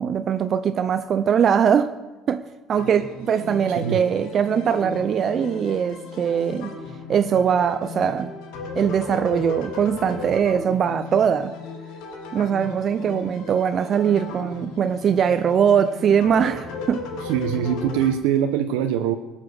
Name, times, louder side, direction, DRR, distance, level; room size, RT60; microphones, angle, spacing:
voice 1, 0.0-1.9 2.3-6.7 7.1-8.3 8.8-11.5 12.3-17.1, right 8 dB, 25° right, 0.4 m, -21 dB
sound 1, 2.8-18.1, left 4 dB, 75° left, 2.8 m, -36 dB
voice 2, 17.2-19.2, right 9 dB, 85° right, 0.9 m, -23 dB
21.0 x 7.3 x 6.5 m
cardioid pair, 180°, 0 cm